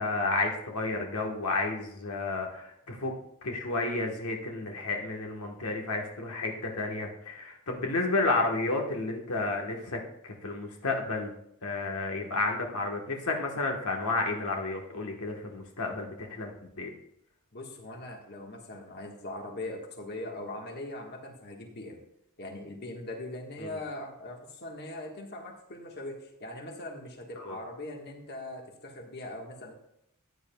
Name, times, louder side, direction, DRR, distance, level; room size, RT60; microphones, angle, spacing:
voice 1, 0.0-3.1 3.4-11.3 11.6-16.9 23.6-23.7 27.4-27.6, left 3 dB, 85° left, 1 dB, 1.3 m, -31 dB
voice 2, 17.5-22.0 22.4-29.7, left 1 dB, 50° left, 1 dB, 1.5 m, -41 dB
14.0 x 9.1 x 2.3 m, 0.76 s
head